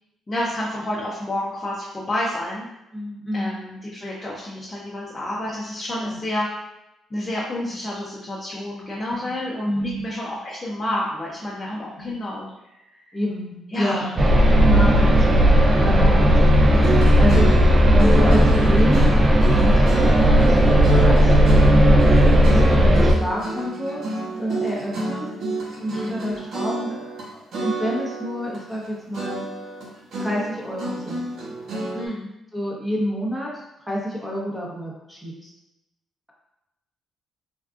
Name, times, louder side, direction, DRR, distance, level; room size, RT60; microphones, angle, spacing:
voice 1, 0.3-2.7 3.3-6.5 7.1-12.5 13.0-13.2 13.7-14.1 25.9-26.3 31.9-32.3, left 1 dB, 25° left, -6 dB, 0.7 m, -29 dB
voice 2, 2.9-3.5 6.0-6.2 9.1-9.2 9.6-10.0 11.9-12.2 13.1-17.7 17.9-22.0 22.5-24.0 24.3-25.3 25.8-29.4 30.2-31.2 32.5-33.5 33.8-35.5, equal, 5° right, -4 dB, 0.9 m, -28 dB
sound 1, 14.2-23.1, equal, 25° right, 0.5 m, -15 dB
sound 2, 16.7-27.2 27.5-28.9 29.1-32.1, right 2 dB, 70° right, 0.7 m, -30 dB
3.4 x 2.3 x 2.4 m, 0.92 s
cardioid pair, 90°, 0 cm